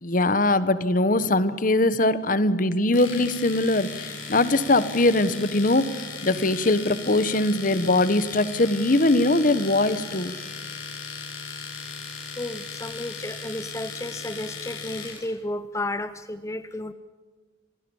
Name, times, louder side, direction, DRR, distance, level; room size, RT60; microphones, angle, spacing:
voice 1, 0.0-10.4, left 2 dB, 45° left, 14 dB, 1.2 m, -22 dB
Domestic sounds home sounds, 2.9-15.3, left 5 dB, 85° left, 6.2 m, -37 dB
voice 2, 11.5-11.9 12.4-16.9, left 1 dB, 15° left, 11 dB, 0.7 m, -33 dB
27.0 x 18.0 x 7.2 m, 1.5 s
head